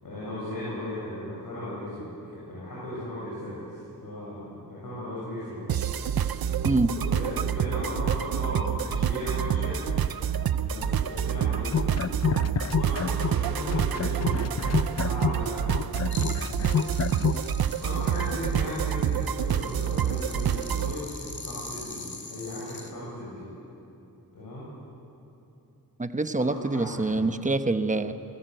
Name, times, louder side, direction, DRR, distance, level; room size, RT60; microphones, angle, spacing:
voice 1, 0.0-2.1 2.4-5.7 6.9-9.9 10.6-11.9 12.7-15.9 17.8-23.5 24.3-24.7 26.4-27.3, left 1 dB, 65° left, -7 dB, 7.3 m, -36 dB
sound 1, 5.7-20.9, right 9 dB, 75° right, 0.8 m, -27 dB
sound 2, 11.6-13.4 13.7-17.4, left 7 dB, 45° left, 0.7 m, -28 dB
sound 3, 16.1-22.9, left 3 dB, 30° left, 2.6 m, -43 dB
voice 2, 26.0-28.1, right 2 dB, 20° right, 9 dB, 1.0 m, -25 dB
29.5 x 19.0 x 7.9 m, 2.9 s
wide cardioid pair, 110°, 36 cm